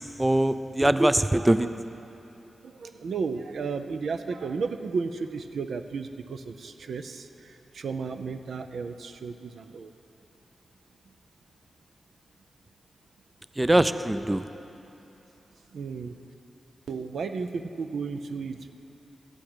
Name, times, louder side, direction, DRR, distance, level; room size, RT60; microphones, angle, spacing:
voice 1, 0.2-1.7 13.6-14.4, right 1 dB, 15° right, 12 dB, 0.4 m, -22 dB
voice 2, 2.6-9.9 15.7-16.2 16.9-18.8, right 5 dB, 80° right, 8 dB, 0.5 m, -34 dB
14.5 x 4.8 x 8.8 m, 3.0 s
cardioid pair, 60°, 0 cm